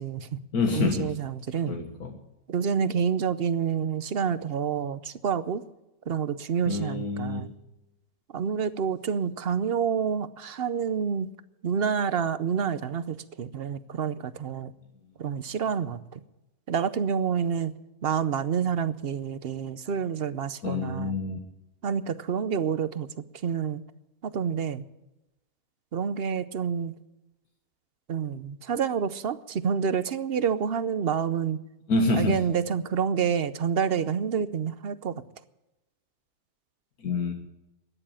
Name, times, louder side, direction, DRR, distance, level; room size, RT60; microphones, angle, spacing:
voice 1, 0.0-0.4 0.7-1.8 2.5-5.6 6.1-7.5 8.3-11.3 11.6-14.7 15.2-16.2 16.7-17.7 18.0-21.2 21.8-23.1 23.4-23.8 24.2-24.8 25.9-26.9 28.1-31.6 32.2-35.2, right 7 dB, 50° right, 14 dB, 0.8 m, -28 dB
voice 2, 0.5-1.1 1.7-2.1 6.6-7.4 20.6-21.4 31.9-32.4 37.0-37.3, left 3 dB, 80° left, 3 dB, 1.9 m, -27 dB
13.5 x 10.0 x 8.7 m, 0.96 s
omnidirectional pair, 1.6 m